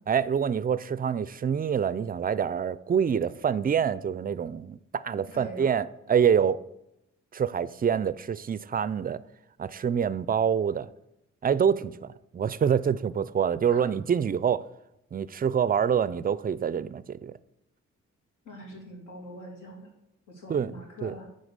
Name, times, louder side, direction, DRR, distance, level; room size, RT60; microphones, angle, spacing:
voice 1, 0.1-6.6 7.3-9.2 9.6-10.9 11.4-14.6 15.1-17.3 20.5-20.7 21.0-21.1, right 7 dB, 30° right, 0.4 m, -26 dB
voice 2, 5.2-5.8 13.7-13.9 18.4-19.9 20.3-21.3, equal, 80° left, 2.5 m, -43 dB
8.5 x 4.0 x 6.5 m
cardioid pair, 65°, 31 cm